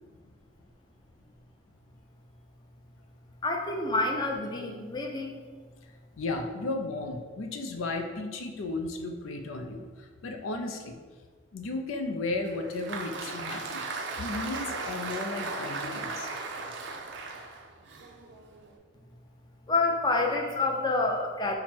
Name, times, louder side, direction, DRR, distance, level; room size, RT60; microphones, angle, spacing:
voice 1, 3.4-5.4 19.7-21.6, left 2 dB, 20° left, 1 dB, 0.5 m, -28 dB
voice 2, 6.2-11.0 11.5-13.8 14.2-16.3, left 2 dB, 90° left, 5 dB, 0.4 m, -34 dB
Applause, 12.4-18.8, right 4 dB, 60° right, 0.5 m, -37 dB
5.8 x 2.1 x 4.3 m, 1.5 s
head